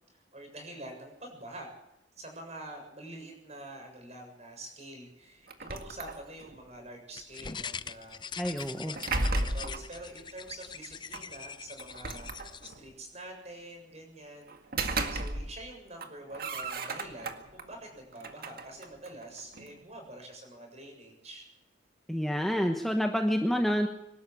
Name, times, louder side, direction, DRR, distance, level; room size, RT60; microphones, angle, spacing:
voice 1, 0.1-1.7 2.2-14.5 14.8-21.5, right 1 dB, 35° right, 3 dB, 7.1 m, -46 dB
sound 1, 5.5-6.6 8.6-9.9 11.1-11.2 11.8-12.9 14.5-15.7 16.0-17.6 18.1-19.8, right 2 dB, 50° right, 1.9 m, -35 dB
sound 2, 7.2-12.7, left 6 dB, 25° left, 0.7 m, -42 dB
voice 2, 8.4-9.0 22.1-23.9, equal, ahead, 3 dB, 1.2 m, -28 dB
25.0 x 12.5 x 8.6 m, 0.85 s
head